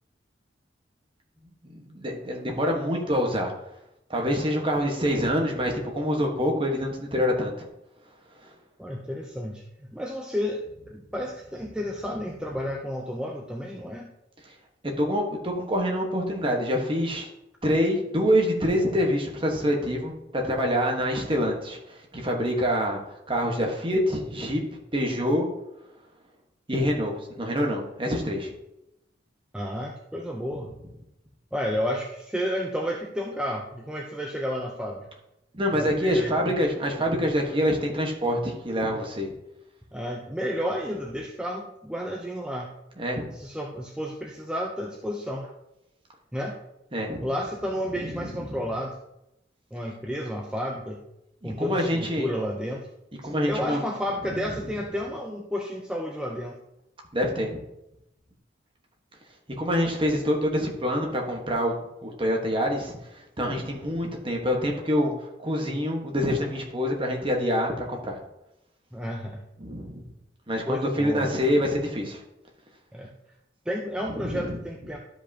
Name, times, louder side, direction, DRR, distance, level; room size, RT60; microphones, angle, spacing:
voice 1, 1.6-3.5 4.1-7.5 15.0-17.3 17.6-23.0 23.3-24.6 24.9-25.5 26.7-28.5 35.5-39.3 43.0-43.3 46.9-47.2 48.0-48.5 51.4-52.3 53.2-53.8 54.3-54.4 57.1-57.6 59.6-61.7 62.0-65.1 65.4-68.2 69.6-70.0 70.5-72.2 74.2-74.5, equal, 30° right, 1 dB, 1.3 m, -26 dB
voice 2, 8.8-9.6 9.9-14.1 29.5-30.7 31.5-35.1 35.7-36.6 39.9-42.7 43.3-45.5 46.3-46.6 47.2-49.0 49.7-51.0 51.4-52.9 53.2-56.6 68.9-69.4 70.7-71.3 72.9-73.1 73.7-75.0, equal, 5° right, -1 dB, 0.5 m, -31 dB
12.0 x 5.2 x 2.8 m, 0.87 s
head